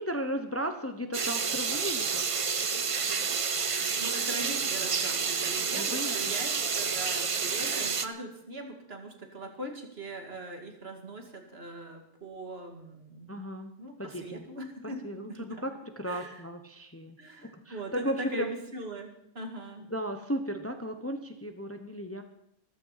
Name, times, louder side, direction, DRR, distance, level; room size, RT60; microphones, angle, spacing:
voice 1, 0.0-2.2 5.8-6.1 13.3-13.7 14.0-14.4 15.0-15.7 16.0-17.2 17.7-18.5 19.9-22.2, equal, 15° left, 7 dB, 0.9 m, -35 dB
sound 1, 1.1-8.1, right 5 dB, 35° right, 0.6 m, -29 dB
voice 2, 3.9-13.3 13.8-15.6 16.0-16.4 17.2-19.9, right 1 dB, 55° right, 4 dB, 2.3 m, -41 dB
14.0 x 13.5 x 5.7 m, 0.78 s
omnidirectional pair, 1.2 m